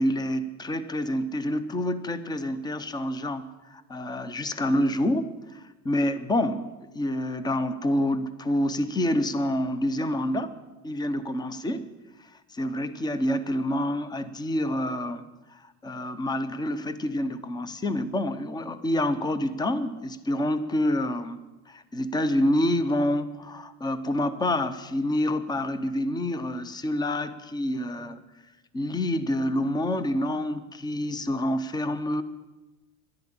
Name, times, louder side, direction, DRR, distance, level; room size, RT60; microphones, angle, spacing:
voice 1, 0.0-10.6 10.8-11.9 12.5-21.4 21.7-28.2 28.7-32.2, left 1 dB, 10° left, 13 dB, 0.6 m, -27 dB
13.5 x 11.0 x 8.7 m, 1.1 s
cardioid pair, 150°, 43 cm